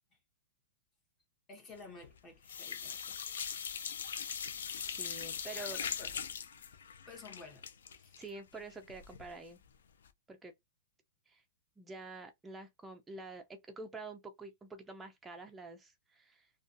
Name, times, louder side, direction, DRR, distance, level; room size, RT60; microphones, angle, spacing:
voice 1, 1.5-3.2 5.5-6.1 7.1-7.7 8.0-8.2, left 3 dB, 20° left, 0.8 m, -52 dB
sound 1, 1.8-2.2 2.4-9.3 9.6-9.7 10.1-10.2, left 7 dB, 80° left, 0.4 m, -41 dB
voice 2, 4.9-5.8 8.2-9.6 10.3-10.5 11.3-11.4 11.8-16.5, right 3 dB, 10° right, 0.3 m, -48 dB
2.4 x 2.2 x 2.4 m
hypercardioid pair, 140°, 0 cm